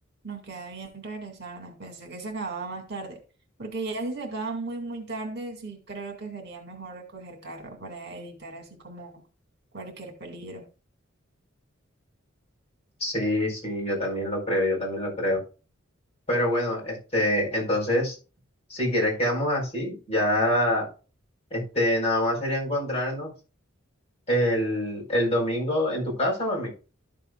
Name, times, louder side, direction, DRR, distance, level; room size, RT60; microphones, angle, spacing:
voice 1, 0.2-3.2 3.6-9.1 9.7-10.6, right 3 dB, 55° right, 4 dB, 2.2 m, -36 dB
voice 2, 13.0-15.4 16.3-18.1 18.7-20.9 21.5-23.3 24.3-26.8, left 1 dB, 30° left, -3 dB, 4.5 m, -25 dB
12.5 x 6.9 x 2.4 m, 0.33 s
head